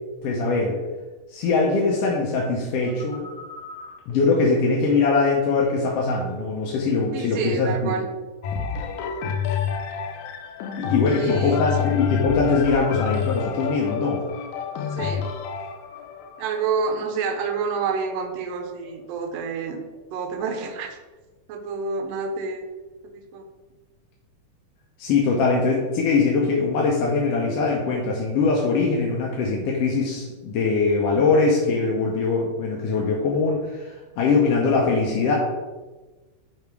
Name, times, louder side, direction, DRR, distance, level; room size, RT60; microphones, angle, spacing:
voice 1, 0.2-0.8 1.3-3.3 4.1-7.9 10.8-14.2 25.0-35.4, left 4 dB, 70° left, -2 dB, 1.6 m, -22 dB
Telephone, 2.9-5.9 6.2-6.8 7.2-7.5, left 3 dB, 30° right, 1.4 m, -41 dB
voice 2, 7.1-8.1 11.1-11.7 14.9-15.3 16.4-19.8 20.1-21.0 21.5-22.7 23.1-23.4, right 5 dB, 75° right, 6 dB, 1.7 m, -28 dB
sound 1, 8.4-18.2 18.9-19.0, left 7 dB, 85° left, 2.0 m, -29 dB
6.8 x 3.3 x 4.6 m, 1.2 s
omnidirectional pair, 3.3 m